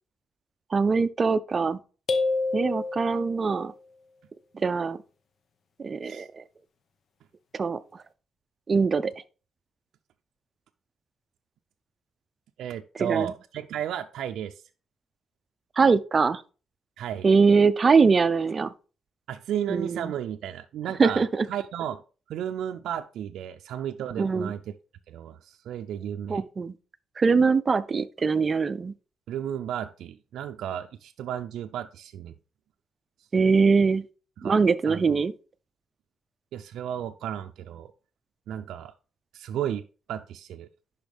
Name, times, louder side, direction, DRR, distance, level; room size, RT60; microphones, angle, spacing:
voice 1, 0.7-1.8 2.5-3.7 4.5-5.0 5.8-6.4 7.5-8.0 8.7-9.1 13.0-13.3 15.8-16.4 17.2-18.7 19.7-20.1 21.0-21.5 24.2-24.5 26.3-26.7 27.2-28.9 33.3-34.0 34.4-35.3, right 4 dB, 35° right, 0.6 m, -22 dB
sound 1, 2.1-3.6, left 3 dB, 55° left, 1.0 m, -28 dB
voice 2, 12.6-14.5 17.0-17.3 19.3-22.0 22.3-24.6 25.1-26.4 29.3-32.4 34.4-34.6 34.9-35.2 36.5-37.9 38.5-38.9 39.3-40.7, right 10 dB, 85° right, 0.5 m, -33 dB
10.5 x 5.7 x 3.5 m
cardioid pair, 110°, 0 cm